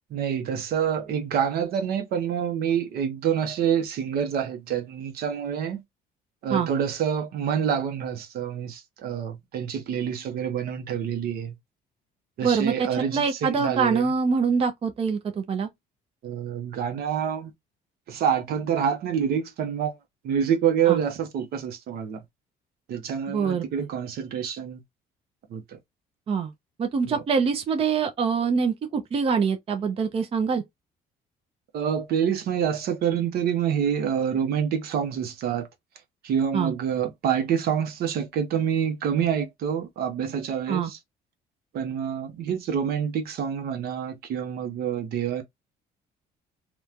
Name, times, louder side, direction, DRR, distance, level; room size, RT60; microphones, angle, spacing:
voice 1, 0.1-5.8 6.4-11.5 12.4-14.0 16.2-17.5 18.1-19.9 20.2-22.2 22.9-24.8 25.5-25.8 27.1-27.2 31.7-35.7 36.2-41.0 41.7-45.4, right 8 dB, 65° right, 0.8 m, -27 dB
voice 2, 12.4-15.7 20.9-21.0 23.3-23.9 26.3-26.5 26.8-30.6 36.5-36.7 40.7-40.9, right 5 dB, 35° right, 0.5 m, -25 dB
2.9 x 2.2 x 2.4 m
cardioid pair, 110°, 17 cm